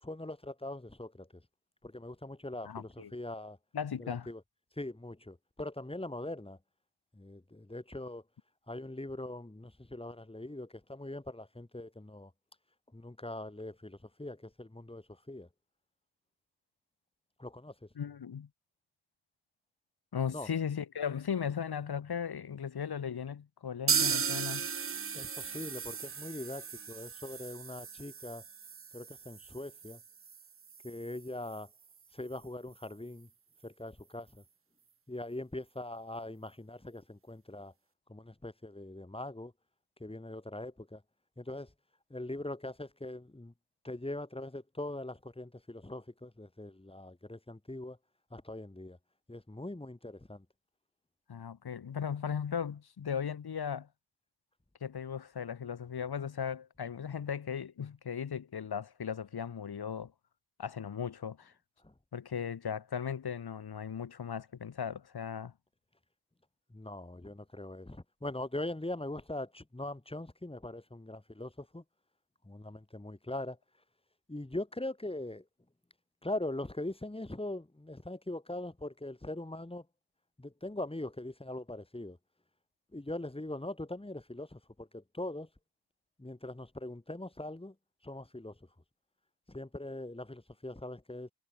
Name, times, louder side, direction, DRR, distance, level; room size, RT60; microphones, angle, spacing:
voice 1, 0.0-1.4 1.8-3.6 4.0-4.4 4.8-6.6 7.1-8.2 8.7-12.3 12.9-15.5 17.4-17.9 20.3-20.5 25.1-28.4 28.9-30.0 30.8-31.7 32.1-33.3 33.6-34.4 35.1-37.7 38.1-39.5 40.0-41.0 41.4-41.7 42.1-43.5 43.8-48.0 48.3-49.0 49.3-50.5 61.8-61.9 66.7-71.8 72.4-73.6 74.3-75.5 76.2-79.9 80.4-82.2 82.9-85.5 86.2-87.8 88.0-88.7 89.5-91.3, left 1 dB, 10° left, 4.2 m, -41 dB
voice 2, 2.7-3.1 3.7-4.3 18.0-18.5 20.1-24.7 51.3-53.9 54.8-60.1 60.6-61.5 62.1-65.5, left 7 dB, 50° left, 1.7 m, -37 dB
sound 1, 23.9-31.6 31.9-32.0 32.3-32.4 32.8-32.9, right 6 dB, 30° right, 0.7 m, -36 dB
cardioid pair, 80°, 47 cm